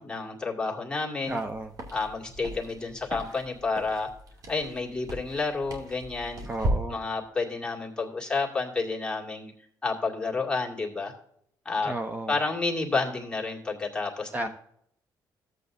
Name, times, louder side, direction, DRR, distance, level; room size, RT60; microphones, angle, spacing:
voice 1, 0.0-1.4 1.9-4.1 4.5-6.4 6.9-9.5 9.8-11.1 11.6-11.9 12.3-14.5, left 3 dB, 10° left, -3 dB, 2.3 m, -30 dB
sound 1, 1.2-6.7, right 1 dB, 55° right, 2.5 m, -37 dB
voice 2, 1.3-1.7 6.4-7.0 11.8-12.3 14.3-14.5, right 2 dB, 20° right, 6 dB, 0.7 m, -32 dB
13.5 x 8.0 x 2.6 m, 0.70 s
cardioid pair, 90°, 8 cm